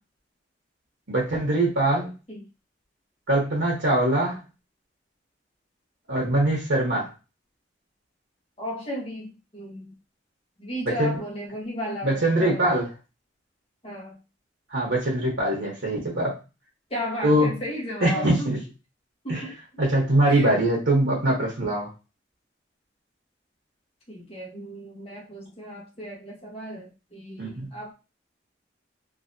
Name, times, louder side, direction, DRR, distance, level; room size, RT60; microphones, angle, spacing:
voice 1, 1.1-2.1 3.3-4.4 6.1-7.1 11.0-11.1 12.0-12.9 14.7-16.3 17.2-17.5 18.0-18.6 19.3-19.4 19.8-21.9 27.4-27.7, right 1 dB, 85° right, -2 dB, 1.2 m, -22 dB
voice 2, 8.6-9.9 10.6-12.7 13.8-14.2 16.9-18.5 19.2-19.8 20.3-20.5 24.1-27.9, equal, 30° left, -2 dB, 1.2 m, -35 dB
3.2 x 2.9 x 2.7 m, 0.29 s
head